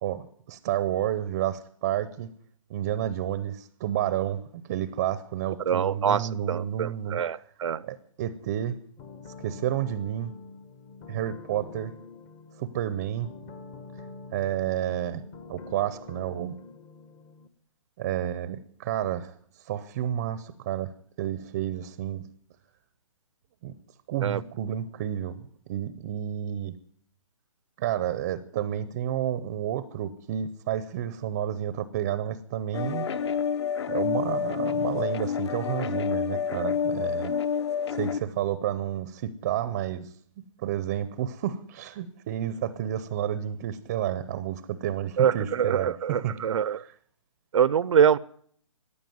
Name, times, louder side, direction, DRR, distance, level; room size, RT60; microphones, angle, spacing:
voice 1, 0.0-2.3 2.7-7.2 7.8-8.8 9.4-10.3 11.1-11.9 12.6-13.3 14.3-15.2 15.5-16.6 18.0-20.9 21.2-22.3 23.6-23.7 24.1-26.8 27.8-33.0 33.9-37.3 37.9-40.1 40.6-46.3, right 11 dB, 20° right, 15 dB, 0.6 m, -30 dB
voice 2, 5.7-7.9 24.2-24.4 45.2-46.8 47.5-48.2, right 8 dB, 65° right, 20 dB, 0.5 m, -24 dB
sound 1, 9.0-17.5, left 4 dB, 15° left, 0.7 m, -46 dB
sound 2, 32.7-38.2, left 7 dB, 50° left, 1.0 m, -28 dB
15.0 x 10.0 x 9.3 m, 0.63 s
hypercardioid pair, 165°, 18 cm